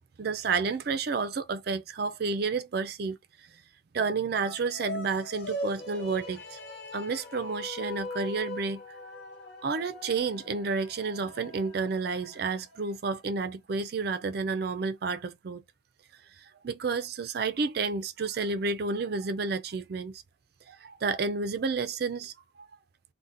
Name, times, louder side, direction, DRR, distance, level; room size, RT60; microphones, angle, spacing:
voice 1, 0.2-3.2 3.9-6.6 6.9-8.8 9.6-15.6 16.6-20.2 20.7-22.3, right 4 dB, 50° right, 0.4 m, -30 dB
sound 1, 4.3-12.8, left 2 dB, 55° left, 0.8 m, -41 dB
4.0 x 2.1 x 2.5 m
head